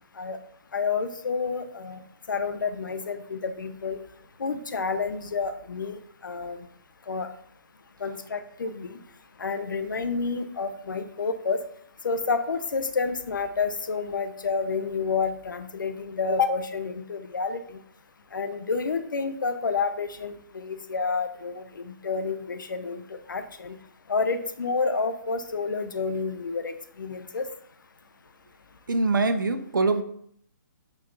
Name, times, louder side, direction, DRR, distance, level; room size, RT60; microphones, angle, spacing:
voice 1, 0.7-2.0 2.3-4.0 4.4-6.6 7.1-7.3 8.0-9.0 9.4-11.6 12.0-17.8 18.3-23.8 24.1-27.5, left 4 dB, 75° left, 8 dB, 0.8 m, -29 dB
voice 2, 28.9-30.0, right 3 dB, 75° right, 8 dB, 1.1 m, -23 dB
7.9 x 4.5 x 5.4 m, 0.67 s
hypercardioid pair, 155°, 11 cm